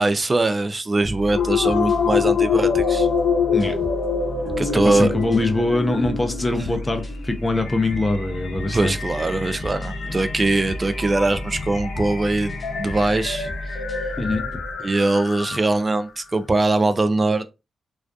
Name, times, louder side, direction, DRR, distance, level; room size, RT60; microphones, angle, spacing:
voice 1, 0.0-3.1 4.6-5.1 8.7-13.5 14.8-17.5, right 2 dB, 30° right, 0.3 m, -21 dB
sound 1, 1.0-14.7, equal, 5° left, 1.0 m, -34 dB
sound 2, 1.3-15.9, left 5 dB, 75° left, 0.6 m, -26 dB
voice 2, 4.6-8.9 10.0-10.2 14.2-14.5, left 2 dB, 20° left, 0.5 m, -23 dB
2.4 x 2.3 x 2.3 m
cardioid pair, 65°, 0 cm